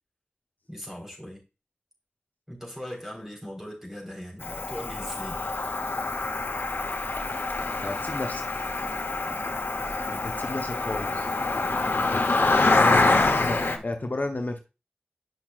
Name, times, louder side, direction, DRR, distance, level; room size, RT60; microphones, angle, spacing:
voice 1, 0.7-1.4 2.5-5.4 13.3-13.9, equal, 10° right, 3.9 m, -40 dB
Cricket, 4.4-13.8, left 3 dB, 85° left, 0.9 m, -26 dB
voice 2, 7.8-8.4 10.1-11.3 12.8-14.6, left 2 dB, 55° left, 0.9 m, -32 dB
9.3 x 5.9 x 2.4 m
wide cardioid pair, 65°, 4 cm